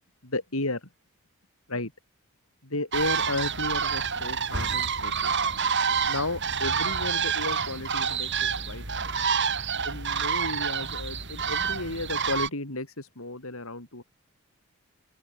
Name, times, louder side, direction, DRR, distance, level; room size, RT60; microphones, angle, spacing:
voice 1, 0.2-0.9 1.7-1.9 2.6-5.4 6.1-9.1 9.8-14.0, left 2 dB, 70° left, 4.5 m, -33 dB
sound 1, 2.9-12.5, right 6 dB, 55° right, 5.3 m, -28 dB
open air
head